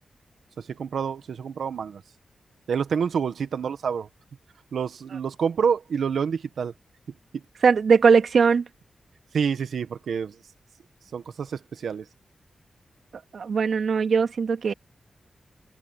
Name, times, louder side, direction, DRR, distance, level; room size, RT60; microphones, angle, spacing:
voice 1, 0.6-2.0 2.7-4.1 4.7-6.7 7.3-7.4 9.3-10.4 11.1-12.0, right 6 dB, 85° right, 1.4 m, -28 dB
voice 2, 7.6-8.7 13.3-14.7, right 5 dB, 65° right, 2.2 m, -20 dB
wide cardioid pair, 135°, 0 cm